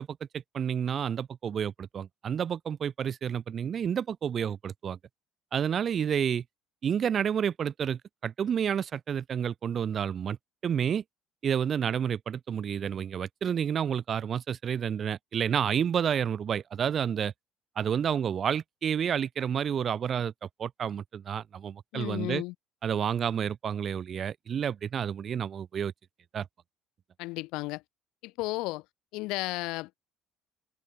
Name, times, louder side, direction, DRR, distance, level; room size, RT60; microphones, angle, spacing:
voice 1, 0.0-5.0 5.5-6.4 6.8-10.4 10.6-11.0 11.4-17.3 17.8-20.3 20.6-22.4 22.8-25.9 26.3-26.5, right 8 dB, 35° right, 1.1 m, -30 dB
voice 2, 21.9-22.5 27.2-27.8 28.2-28.8 29.1-30.0, left 22 dB, 85° left, 3.8 m, -33 dB
cardioid pair, 165°, 0 cm